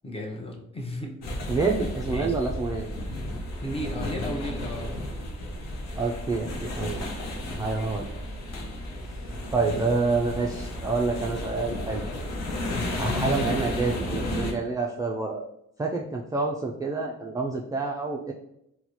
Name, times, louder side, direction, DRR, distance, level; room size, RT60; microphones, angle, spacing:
voice 1, 0.0-1.1 1.5-2.3 3.6-4.9, equal, 20° left, 1 dB, 0.7 m, -35 dB
sound 1, 1.2-14.5, left 1 dB, 65° left, 0.8 m, -33 dB
voice 2, 1.5-2.9 6.0-7.1 7.6-8.1 9.5-12.0 13.0-15.5 15.8-18.3, right 3 dB, 10° right, -1 dB, 0.3 m, -28 dB
3.9 x 2.1 x 3.0 m, 0.77 s
cardioid pair, 90°, 30 cm